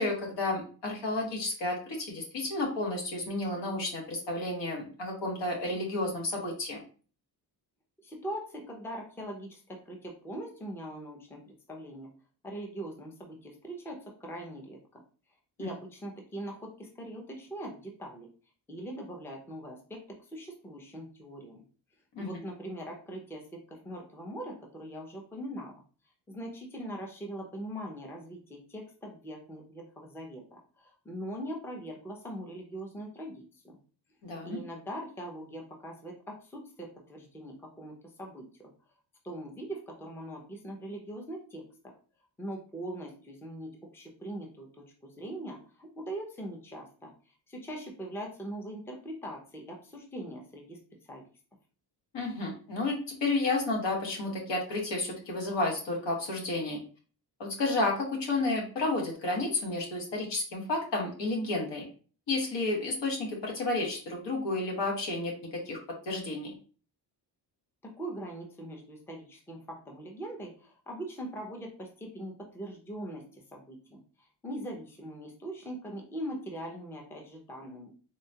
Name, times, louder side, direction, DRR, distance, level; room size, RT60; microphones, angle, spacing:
voice 1, 0.0-6.8 15.6-15.7 22.1-22.4 34.2-34.6 52.1-56.8 57.4-61.9 62.3-65.8 66.0-66.5, left 2 dB, 85° left, 0 dB, 1.3 m, -31 dB
voice 2, 8.0-12.1 12.4-15.0 15.6-18.3 18.7-21.6 22.2-23.4 23.7-25.8 26.3-33.8 34.4-38.7 39.2-41.9 42.4-47.1 47.5-50.8 51.1-51.3 67.8-77.9, right 1 dB, 5° left, 1 dB, 0.5 m, -41 dB
3.7 x 2.2 x 2.7 m, 0.39 s
wide cardioid pair, 150°, 42 cm